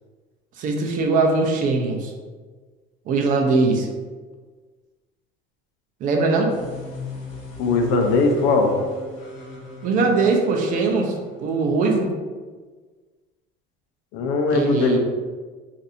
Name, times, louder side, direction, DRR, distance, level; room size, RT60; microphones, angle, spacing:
voice 1, 0.6-2.1 3.1-3.9 6.0-6.5 9.8-12.1 14.5-15.0, right 3 dB, 40° right, 2 dB, 0.5 m, -21 dB
sound 1, 6.5-11.9, left 3 dB, 35° left, 0.7 m, -38 dB
voice 2, 7.6-8.8 14.1-15.0, left 3 dB, 80° left, 4 dB, 0.6 m, -19 dB
2.6 x 2.6 x 4.1 m, 1.4 s
cardioid pair, 165°, 21 cm